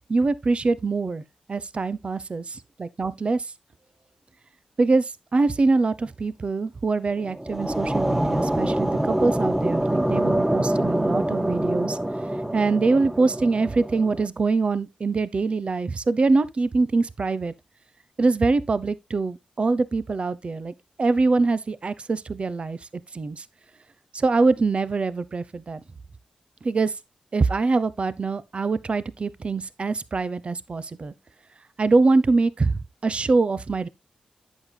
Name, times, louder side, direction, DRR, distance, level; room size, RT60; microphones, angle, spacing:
voice 1, 0.1-1.2 1.5-3.5 4.8-12.0 12.5-17.5 18.2-20.7 21.0-22.8 23.1-23.4 24.1-25.8 26.6-26.9 27.3-31.1 31.8-33.9, right 3 dB, 50° right, 0.7 m, -24 dB
sound 1, 7.1-14.3, right 1 dB, 10° right, 1.0 m, -25 dB
11.0 x 8.3 x 2.2 m
cardioid pair, 45°, 3 cm